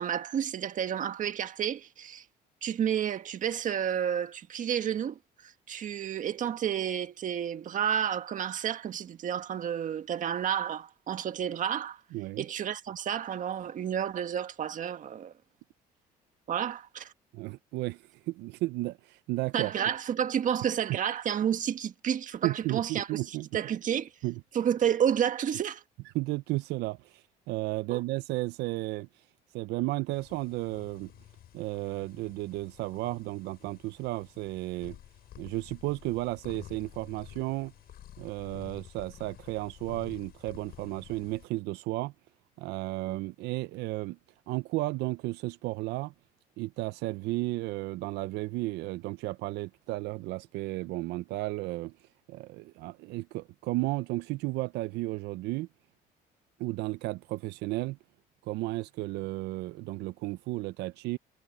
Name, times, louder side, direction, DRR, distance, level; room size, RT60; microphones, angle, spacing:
voice 1, 0.0-2.3 2.6-12.0 12.4-15.3 16.5-17.1 19.5-24.1 24.5-25.8 27.9-28.0 43.1-43.2, right 9 dB, 50° right, 1.7 m, -31 dB
voice 2, 12.1-12.4 17.3-19.7 22.4-23.5 24.2-24.4 26.1-29.1 29.5-31.1 31.5-35.0 35.4-37.7 38.2-42.1 42.6-44.2 44.5-46.1 46.6-51.9 52.3-55.7 56.6-58.0 58.4-61.2, right 19 dB, 85° right, 0.5 m, -33 dB
sound 1, 30.1-41.5, left 12 dB, 65° left, 7.0 m, -51 dB
cardioid pair, 110°, 17 cm